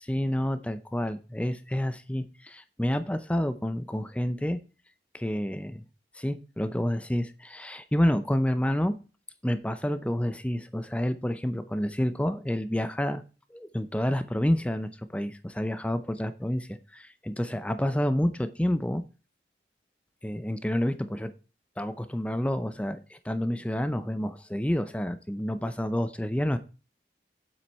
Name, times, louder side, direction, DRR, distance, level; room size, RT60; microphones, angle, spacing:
voice 1, 0.1-4.6 5.1-5.8 6.1-8.9 9.4-13.2 13.5-19.0 20.2-21.3 21.8-26.6, equal, 5° left, 11 dB, 0.6 m, -29 dB
9.0 x 7.9 x 4.3 m, 0.33 s
head